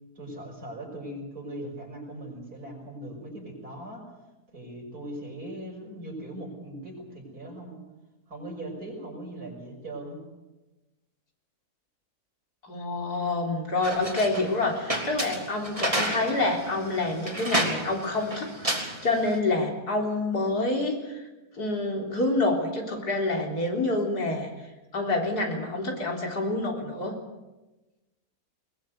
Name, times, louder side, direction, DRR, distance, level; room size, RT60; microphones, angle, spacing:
voice 1, 0.2-4.1 4.5-7.8 8.3-10.2, right 1 dB, 75° right, -1 dB, 6.6 m, -39 dB
voice 2, 12.7-21.3 21.5-24.5 24.9-27.1, left 2 dB, 85° left, 1 dB, 4.4 m, -27 dB
sound 1, 13.8-19.4, right 1 dB, 20° right, 3.3 m, -31 dB
21.5 x 21.0 x 8.0 m, 1.1 s
omnidirectional pair, 1.6 m